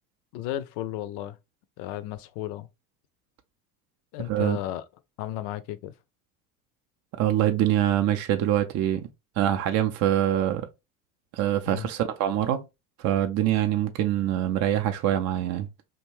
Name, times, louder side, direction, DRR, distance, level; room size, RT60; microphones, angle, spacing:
voice 1, 0.3-1.4 1.8-2.7 4.1-4.8 5.2-5.9 11.7-11.9, left 13 dB, 60° left, 0.5 m, -34 dB
voice 2, 7.2-9.1 9.4-10.7 11.3-12.6 13.0-15.7, right 11 dB, 35° right, 0.4 m, -24 dB
2.7 x 2.2 x 3.1 m
hypercardioid pair, 75°, 49 cm